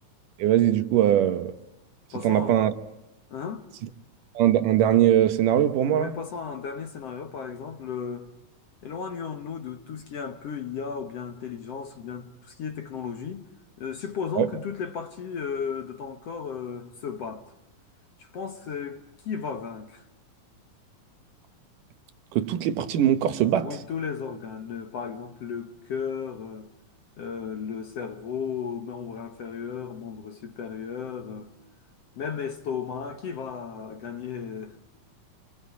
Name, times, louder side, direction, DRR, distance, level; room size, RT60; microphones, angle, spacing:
voice 1, 0.4-1.6 2.2-2.7 4.4-6.1 14.4-14.5 22.3-23.8, right 11 dB, 75° right, 2.6 m, -21 dB
voice 2, 2.1-2.6 3.3-3.7 5.9-8.3 8.8-13.5 13.8-17.5 18.2-20.0 23.6-26.7 27.2-31.5 32.2-34.8, left 6 dB, 60° left, 1.9 m, -35 dB
28.5 x 23.5 x 8.4 m
omnidirectional pair, 4.0 m